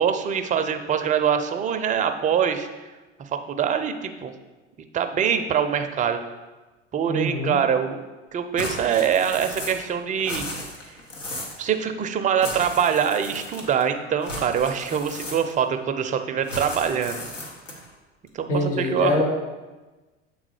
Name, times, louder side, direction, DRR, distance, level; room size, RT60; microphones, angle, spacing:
voice 1, 0.0-2.7 3.3-4.3 4.9-6.2 6.9-8.0 8.3-10.4 11.6-17.2 18.3-19.2, right 8 dB, 20° right, 8 dB, 0.4 m, -24 dB
voice 2, 7.1-7.6 18.5-19.2, left 2 dB, 70° left, -2 dB, 2.0 m, -24 dB
sound 1, 8.6-9.9 10.2-11.6 12.4-13.8 14.2-15.7 16.4-17.9, left 1 dB, 90° left, 1.1 m, -35 dB
7.5 x 3.6 x 4.8 m, 1.2 s
figure-of-eight pair, 75°, 37 cm